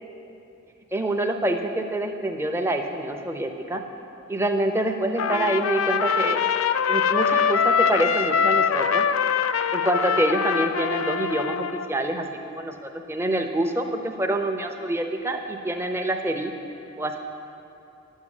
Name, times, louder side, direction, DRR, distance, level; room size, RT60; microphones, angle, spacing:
voice 1, 0.9-3.8 4.3-6.4 6.9-9.0 9.7-16.5 17.0-17.2, right 1 dB, 10° right, 5 dB, 0.6 m, -26 dB
Trumpet, 5.2-11.9, left 6 dB, 75° left, 0.4 m, -23 dB
10.5 x 7.3 x 8.2 m, 2.9 s
head